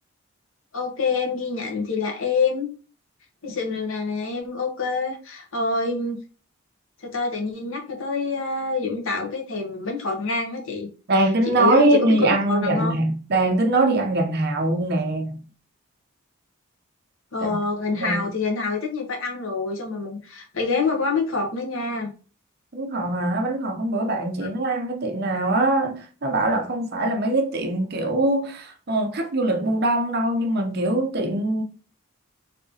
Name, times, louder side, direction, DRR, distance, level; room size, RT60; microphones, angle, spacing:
voice 1, 0.7-2.7 3.4-6.2 7.0-10.9 11.5-12.9 17.3-22.1, left 4 dB, 70° left, 0.9 m, -26 dB
voice 2, 11.1-15.4 17.4-17.6 17.9-18.3 22.7-31.6, right 2 dB, 50° right, 0.6 m, -22 dB
3.4 x 2.8 x 2.7 m
head